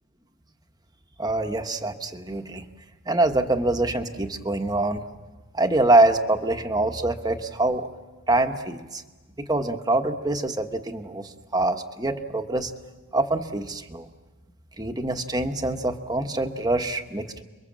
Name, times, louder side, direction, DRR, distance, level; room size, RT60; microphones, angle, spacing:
voice 1, 1.2-2.6 3.1-5.0 5.5-7.9 8.3-9.0 9.5-12.7 13.1-14.1 14.8-17.4, right 2 dB, 15° right, 6 dB, 1.2 m, -24 dB
30.0 x 23.0 x 7.5 m, 1.3 s
head